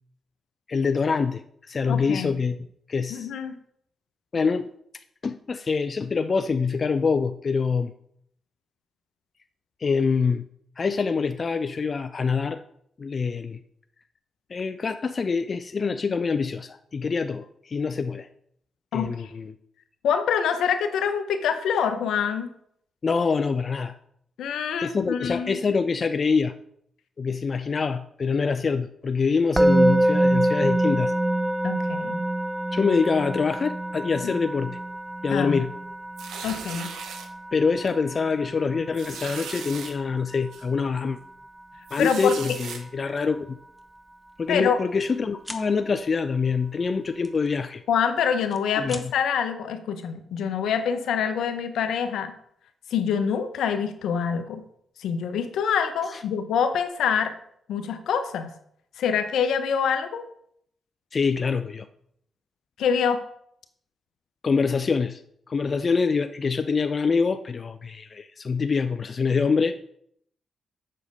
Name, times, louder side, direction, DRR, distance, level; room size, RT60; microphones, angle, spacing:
voice 1, 0.7-2.6 2.9-3.3 4.3-4.7 5.2-7.9 9.8-10.4 10.8-12.6 13.0-13.6 14.5-18.3 18.9-19.5 23.0-23.9 24.8-26.5 27.2-31.1 32.7-34.8 35.2-35.7 37.5-41.2 41.9-43.6 44.4-47.8 48.8-49.0 56.1-56.2 61.1-61.9 64.4-65.2 65.5-69.8, left 5 dB, 50° left, 10 dB, 0.5 m, -25 dB
voice 2, 1.9-2.3 3.1-3.5 18.9-19.3 20.0-22.5 24.4-25.6 31.6-32.2 35.3-35.6 36.4-36.9 42.0-42.6 44.5-44.8 47.9-52.3 52.9-54.6 55.0-57.3 57.7-58.5 59.0-60.2 62.8-63.2, left 7 dB, 80° left, 9 dB, 0.9 m, -25 dB
Musical instrument, 29.6-40.7, right 1 dB, 15° right, 0.5 m, -26 dB
sound 1, 36.2-37.3 37.9-38.0 38.3-38.4 38.9-39.9 40.5-40.6 41.9-42.8, right 6 dB, 80° right, 1.1 m, -37 dB
sound 2, 43.1-43.3 43.8-44.0 44.2-45.1 45.4-45.7 47.2-48.0 48.4-49.1, left 1 dB, 5° left, 1.4 m, -41 dB
7.5 x 6.4 x 5.4 m, 0.71 s
supercardioid pair, 50°, 0 cm